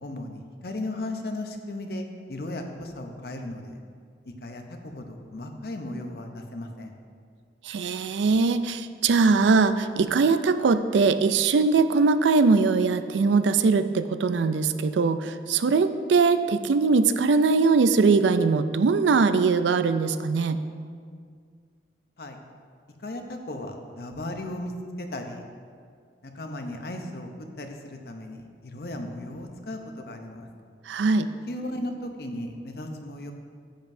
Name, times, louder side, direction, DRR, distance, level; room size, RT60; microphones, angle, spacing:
voice 1, 0.0-3.8 4.2-7.0 22.2-22.4 23.0-25.4 26.2-27.3 27.6-30.5 31.5-33.3, left 1 dB, 55° left, 4 dB, 0.7 m, -36 dB
voice 2, 7.6-20.6 30.9-31.3, right 4 dB, 90° right, 11 dB, 0.4 m, -21 dB
10.0 x 7.4 x 2.7 m, 2.1 s
head